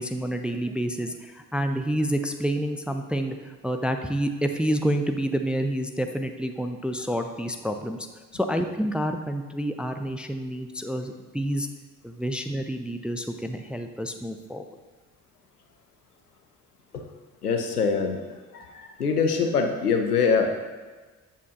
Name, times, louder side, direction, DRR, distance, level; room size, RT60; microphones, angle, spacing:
voice 1, 0.0-8.0 8.3-11.7 12.0-14.6, equal, 5° right, 6 dB, 0.3 m, -28 dB
voice 2, 17.4-18.2 18.5-20.5, left 5 dB, 90° left, 5 dB, 0.6 m, -24 dB
8.2 x 7.2 x 2.7 m, 1.3 s
figure-of-eight pair, 45°, 44 cm